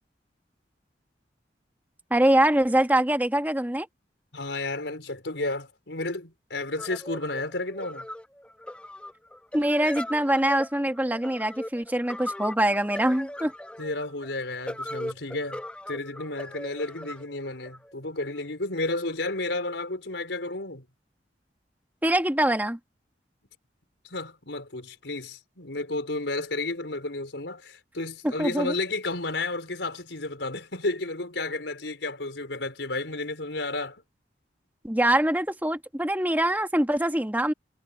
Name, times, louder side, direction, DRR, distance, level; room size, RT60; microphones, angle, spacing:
voice 1, 2.1-3.9 9.5-13.5 22.0-22.8 28.4-28.7 34.8-37.5, right 1 dB, 10° right, 1.5 m, -24 dB
voice 2, 4.3-8.1 13.8-15.6 15.9-20.9 24.0-34.0, left 2 dB, 90° left, 4.7 m, -32 dB
sound 1, 6.8-18.4, left 1 dB, 5° left, 1.0 m, -39 dB
head